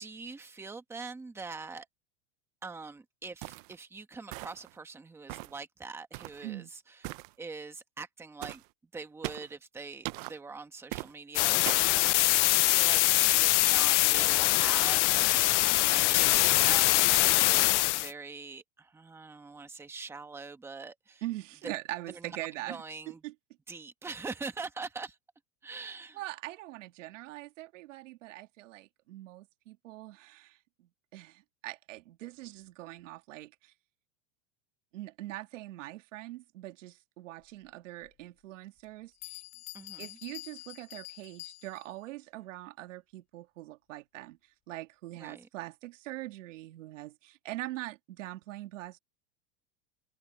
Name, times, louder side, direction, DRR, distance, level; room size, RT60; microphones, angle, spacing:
voice 1, 0.0-1.9 2.6-7.1 7.4-8.6 8.9-21.2 21.6-21.7 22.1-22.4 22.7-23.2 23.7-25.2 25.6-26.2 39.7-40.2 45.2-45.5, right 4 dB, 5° right, 1.3 m, -43 dB
sound 1, 3.4-3.7 4.3-4.7 5.3-5.6 6.1-6.4 7.0-7.3 8.4-8.6 9.2-9.5 10.0-10.3 10.9-11.1 11.7-11.9, right 22 dB, 45° right, 0.6 m, -39 dB
sound 2, 11.3-18.1, left 20 dB, 70° left, 0.6 m, -23 dB
voice 2, 21.2-23.3 26.1-33.7 34.9-39.4 40.0-44.4 44.7-49.0, right 17 dB, 80° right, 2.0 m, -43 dB
Bell, 38.0-38.1 38.8-38.9 39.2-42.0, left 25 dB, 40° left, 4.1 m, -46 dB
supercardioid pair, 160°, 37 cm